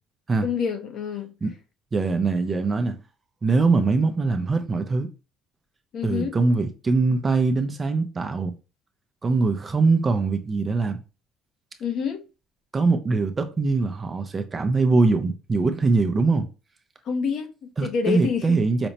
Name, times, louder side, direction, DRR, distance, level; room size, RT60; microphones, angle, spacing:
voice 1, 0.4-1.3 5.9-6.4 11.8-12.2 17.1-18.6, left 6 dB, 50° left, 0.6 m, -27 dB
voice 2, 1.9-3.0 3.4-5.1 6.0-8.5 9.2-11.0 12.7-16.5 17.8-18.9, right 3 dB, 20° right, 0.4 m, -22 dB
5.0 x 2.1 x 2.7 m
cardioid pair, 145°, 0 cm